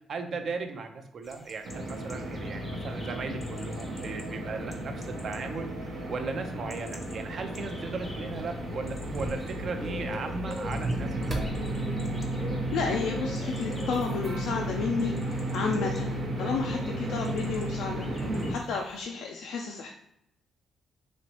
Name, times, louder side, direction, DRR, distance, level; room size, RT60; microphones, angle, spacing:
voice 1, 0.1-11.5, right 4 dB, 55° right, 6 dB, 0.5 m, -37 dB
sound 1, 1.2-19.0, left 2 dB, 20° left, 0.5 m, -46 dB
sound 2, 1.6-18.5, right 1 dB, 80° right, 0.8 m, -34 dB
sound 3, 8.0-14.8, right 1 dB, 20° right, 0.8 m, -43 dB
voice 2, 12.7-19.9, left 5 dB, 80° left, 1 dB, 0.4 m, -32 dB
3.1 x 3.0 x 2.8 m, 0.78 s
cardioid pair, 90°, 0 cm